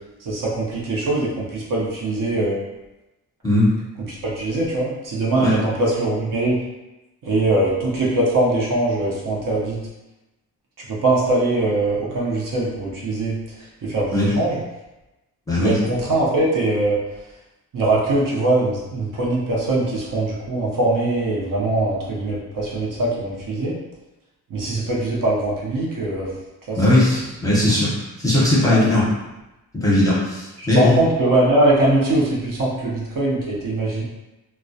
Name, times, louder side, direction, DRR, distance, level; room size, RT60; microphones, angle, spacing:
voice 1, 0.2-2.7 4.1-6.6 7.2-9.8 10.8-14.6 15.5-17.0 17.7-23.7 24.5-26.3 26.7-27.2 28.6-28.9 30.6-34.0, right 2 dB, 55° right, -4 dB, 0.6 m, -22 dB
voice 2, 15.5-15.8 26.8-29.1 29.7-30.9, left 1 dB, 10° left, -8 dB, 0.7 m, -18 dB
2.2 x 2.1 x 2.6 m, 1.0 s
wide cardioid pair, 125°, 38 cm